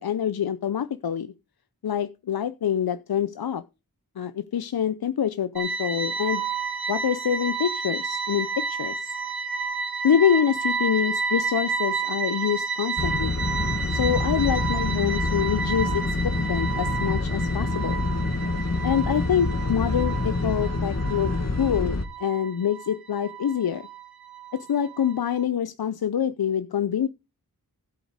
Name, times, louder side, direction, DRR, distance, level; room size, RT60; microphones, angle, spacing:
voice 1, 0.0-1.3 1.8-3.6 4.2-6.4 6.9-9.1 10.0-13.4 13.9-18.0 18.8-21.3 21.6-23.9 24.5-27.1, left 8 dB, 80° left, 0.6 m, -26 dB
sound 1, 5.6-25.4, right 5 dB, 85° right, 1.3 m, -31 dB
sound 2, 13.0-22.1, left 3 dB, 45° left, 1.8 m, -27 dB
12.5 x 8.1 x 4.9 m
wide cardioid pair, 60°, 37 cm